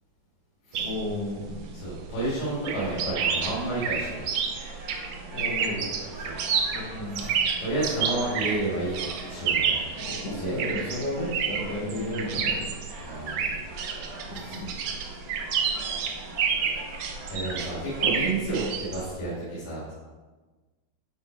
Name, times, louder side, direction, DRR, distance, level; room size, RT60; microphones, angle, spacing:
sound 1, 0.7-19.2, right 6 dB, 90° right, 1.4 m, -30 dB
voice 1, 0.8-1.9 5.3-5.9 6.7-7.3 10.0-12.8 14.3-14.7, left 1 dB, 50° left, -8 dB, 2.4 m, -33 dB
voice 2, 1.7-4.3 6.2-6.4 7.2-9.0 9.2-9.8 10.3-10.6 13.0-13.6 14.4-14.6 17.3-19.9, right 2 dB, 85° left, -9 dB, 4.3 m, -31 dB
sound 2, 2.7-18.7, right 1 dB, 55° right, 3.1 m, -44 dB
9.9 x 5.0 x 4.6 m, 1.3 s
omnidirectional pair, 4.2 m